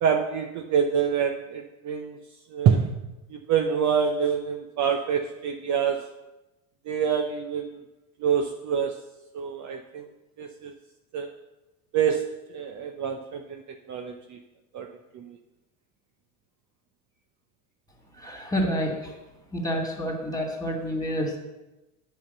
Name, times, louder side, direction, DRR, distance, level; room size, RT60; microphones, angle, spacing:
voice 1, 0.0-2.2 2.5-3.0 3.3-6.1 6.9-7.8 8.2-9.0 9.3-10.0 10.4-10.7 11.1-11.3 11.9-14.4 14.7-14.9 15.1-15.4, right 7 dB, 40° right, 4 dB, 0.8 m, -26 dB
voice 2, 18.2-19.1 19.5-21.4, equal, 10° left, 1 dB, 2.6 m, -28 dB
8.5 x 5.6 x 6.7 m, 0.99 s
hypercardioid pair, 85°, 46 cm